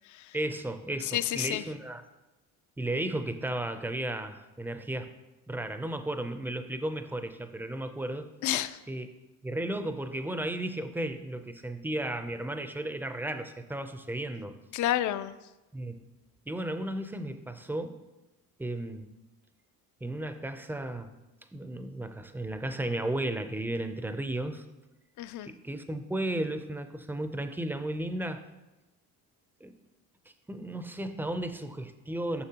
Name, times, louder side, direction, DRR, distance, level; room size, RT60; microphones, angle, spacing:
voice 1, 0.3-2.0 2.8-5.1 5.5-8.3 8.9-9.1 9.4-14.5 15.7-16.0 16.5-18.0 18.6-19.1 20.0-21.1 21.5-24.6 25.4-28.4 29.6-29.7 30.5-32.4, right 1 dB, 5° right, 8 dB, 0.4 m, -34 dB
voice 2, 1.1-1.6 8.4-8.8 14.7-15.4 25.2-25.5, left 13 dB, 55° left, 14 dB, 0.5 m, -30 dB
9.7 x 6.0 x 2.8 m, 1.0 s
cardioid pair, 110°, 35 cm